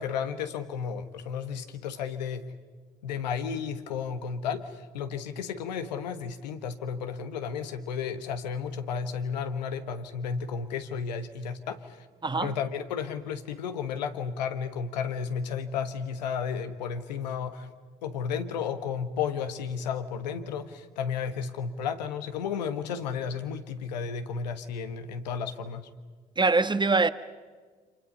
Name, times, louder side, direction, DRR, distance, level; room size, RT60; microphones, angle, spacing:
voice 1, 0.0-2.5 3.0-12.0 12.4-17.7 18.0-25.9, left 6 dB, 85° left, 1.4 m, -33 dB
voice 2, 26.4-27.1, right 3 dB, 20° right, 1.3 m, -23 dB
29.5 x 27.5 x 5.6 m
hypercardioid pair, 50°, 21 cm